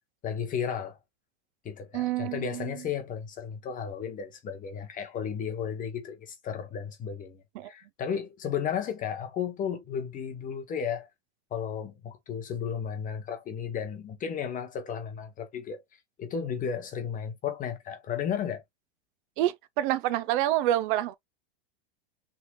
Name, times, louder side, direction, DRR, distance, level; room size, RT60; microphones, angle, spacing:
voice 1, 0.2-1.0 1.6-11.1 11.5-15.8 16.2-18.6, left 7 dB, 25° left, 0.9 m, -34 dB
voice 2, 1.9-2.7 7.5-7.7 19.4-21.1, right 13 dB, 50° right, 0.7 m, -27 dB
5.6 x 3.6 x 2.2 m
supercardioid pair, 140°, 33 cm